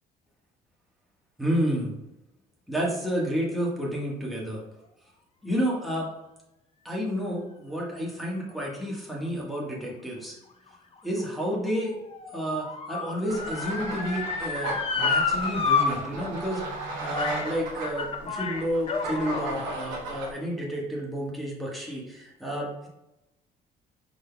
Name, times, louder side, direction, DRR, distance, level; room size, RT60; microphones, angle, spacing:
voice 1, 1.4-1.9 2.7-4.6 5.4-6.1 6.8-10.4 11.0-11.9 12.3-22.9, equal, ahead, -5 dB, 1.4 m, -30 dB
Motor vehicle (road) / Siren, 10.7-15.9 16.2-16.3 17.1-17.5 17.8-19.5 20.2-20.3, left 5 dB, 35° left, 0.6 m, -30 dB
sound 1, 13.3-20.3, right 2 dB, 85° right, 1.1 m, -35 dB
5.0 x 4.0 x 2.3 m, 0.90 s
cardioid pair, 110°, 17 cm